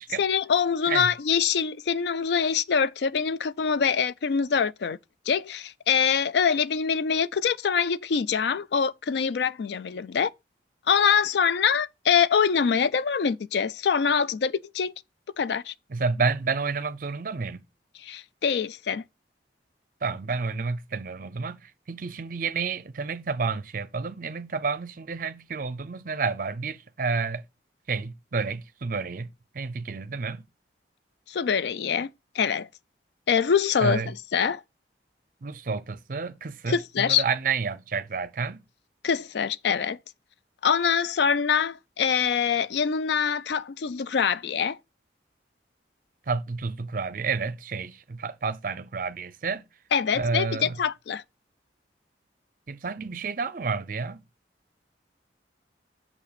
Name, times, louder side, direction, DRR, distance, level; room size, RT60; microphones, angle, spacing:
voice 1, 0.2-5.0 5.3-10.3 10.9-14.9 15.4-15.7 18.0-19.0 31.3-32.7 33.3-34.6 36.7-37.2 39.0-40.0 40.6-44.8 49.9-51.2, left 6 dB, 70° left, 0.4 m, -24 dB
voice 2, 15.9-17.6 20.0-27.4 27.9-29.3 29.5-30.5 33.8-34.1 35.4-38.6 46.3-49.7 50.1-50.8 52.7-54.2, right 4 dB, 50° right, 0.5 m, -30 dB
6.7 x 5.8 x 4.1 m
head